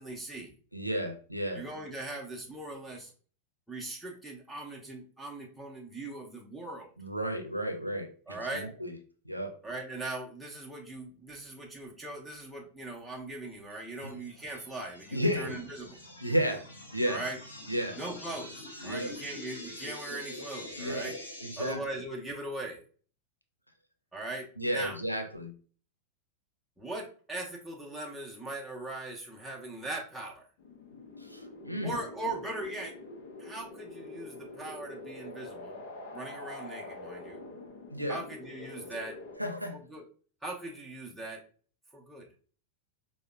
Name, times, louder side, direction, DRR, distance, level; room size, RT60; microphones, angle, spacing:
voice 1, 0.0-0.5 1.5-3.1 3.7-6.9 8.3-8.7 9.6-16.0 17.1-17.4 18.0-21.2 21.6-22.8 24.1-25.0 26.8-30.5 31.8-32.9 33.4-35.8 36.1-37.4 38.1-39.2 39.7-40.0 40.4-41.4 41.9-42.3, right 2 dB, ahead, 0.7 m, -40 dB
voice 2, 0.7-1.6 7.0-8.9 9.2-9.6 14.0-14.2 15.1-15.5 16.2-16.7 16.9-17.2 17.7-18.0 18.8-19.1 20.8-21.1 21.4-21.8 24.6-25.5 31.2-32.0 37.9-38.2 39.4-39.8, equal, 90° right, 0.5 m, -33 dB
sound 1, 14.0-21.7, left 1 dB, 85° left, 0.9 m, -45 dB
sound 2, 30.6-39.4, left 2 dB, 55° left, 0.6 m, -45 dB
4.8 x 2.1 x 2.5 m
figure-of-eight pair, 90°, 0 cm